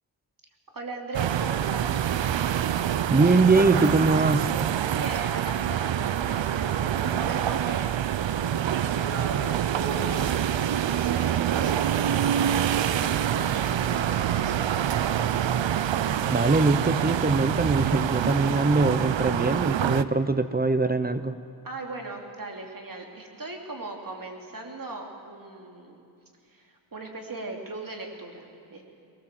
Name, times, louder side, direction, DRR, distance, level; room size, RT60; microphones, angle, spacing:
voice 1, 0.7-1.9 4.9-12.5 12.8-15.5 21.6-26.0 26.5-28.8, right 2 dB, 50° right, 1 dB, 3.0 m, -39 dB
sound 1, 1.1-20.0, right 10 dB, 80° right, 0.7 m, -26 dB
voice 2, 3.1-4.5 16.3-21.4, right 3 dB, 20° right, 11 dB, 0.7 m, -22 dB
21.5 x 18.5 x 7.6 m, 2.5 s
wide cardioid pair, 85°, 44 cm